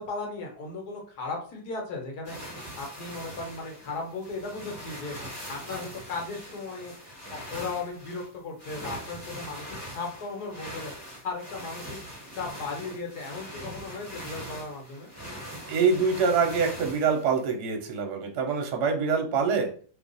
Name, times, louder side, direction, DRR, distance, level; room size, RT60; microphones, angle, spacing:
voice 1, 0.0-15.1, left 3 dB, 65° left, 1 dB, 1.3 m, -37 dB
sound 1, 2.2-17.5, equal, 10° right, 1.2 m, -42 dB
voice 2, 15.7-19.7, right 5 dB, 70° right, 2 dB, 1.2 m, -25 dB
3.0 x 2.3 x 3.9 m, 0.43 s
omnidirectional pair, 2.0 m